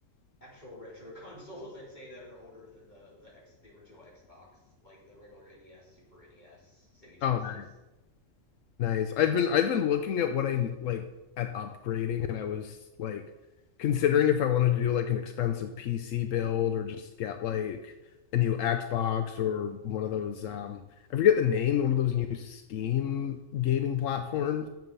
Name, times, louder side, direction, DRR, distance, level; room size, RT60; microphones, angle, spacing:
voice 1, 0.4-7.6, left 1 dB, 35° left, -6 dB, 3.9 m, -50 dB
voice 2, 7.2-7.6 8.8-11.0 11.4-13.2 13.8-17.9 18.3-20.8 21.1-24.7, left 10 dB, 80° left, 7 dB, 1.0 m, -28 dB
10.5 x 7.3 x 5.5 m, 1.0 s
omnidirectional pair, 1.3 m